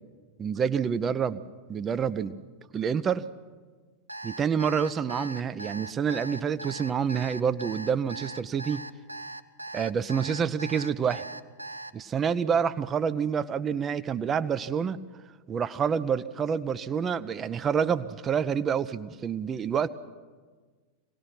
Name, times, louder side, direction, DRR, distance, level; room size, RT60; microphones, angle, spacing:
voice 1, 0.4-1.4 1.7-2.4 2.7-3.2 4.2-8.8 9.7-11.2 11.9-15.0 15.5-19.9, right 7 dB, 25° right, 14 dB, 0.6 m, -27 dB
Alarm, 4.1-11.9, right 2 dB, 85° right, 0.6 m, -40 dB
25.0 x 18.0 x 5.9 m, 1.5 s
figure-of-eight pair, 90°, 0 cm